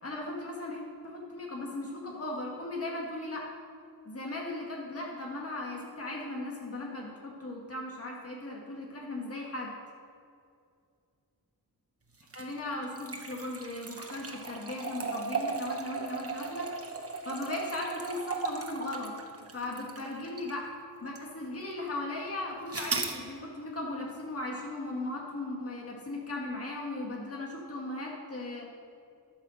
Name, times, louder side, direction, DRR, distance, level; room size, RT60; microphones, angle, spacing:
voice 1, 0.0-3.5 4.1-9.7 12.3-16.7 17.2-19.1 19.5-20.7 21.0-28.7, left 2 dB, 35° left, -2 dB, 1.8 m, -37 dB
sound 1, 12.2-20.6 21.2-21.3 22.7-23.2, right 4 dB, 35° right, 1.2 m, -37 dB
13.0 x 5.6 x 6.4 m, 2.4 s
wide cardioid pair, 85°, 39 cm